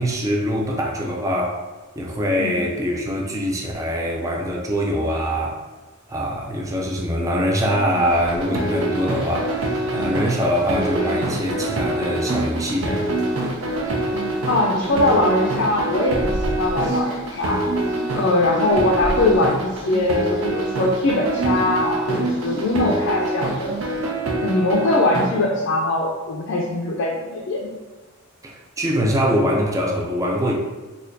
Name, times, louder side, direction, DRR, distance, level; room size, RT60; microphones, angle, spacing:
voice 1, 0.0-1.6 2.0-5.6 6.1-9.5 9.9-13.1 28.4-30.5, equal, 15° right, -1 dB, 0.4 m, -23 dB
sound 1, 7.6-24.1, right 2 dB, 55° right, 0.9 m, -32 dB
sound 2, 8.2-25.3, right 1 dB, 75° right, 0.5 m, -25 dB
voice 2, 14.5-17.6 18.1-23.8 24.4-27.7, left 2 dB, 60° left, -1 dB, 0.4 m, -21 dB
4.2 x 2.3 x 2.6 m, 1.3 s
head